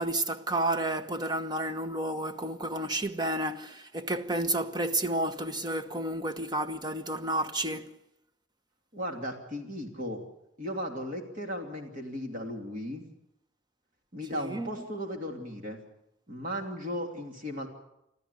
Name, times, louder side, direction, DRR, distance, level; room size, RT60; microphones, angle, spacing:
voice 1, 0.0-8.0 14.3-14.7, right 1 dB, 20° right, 1.1 m, -31 dB
voice 2, 8.9-10.2 10.6-13.0 14.1-15.8 16.3-17.7, equal, 45° right, 3.0 m, -36 dB
26.5 x 14.0 x 8.3 m
head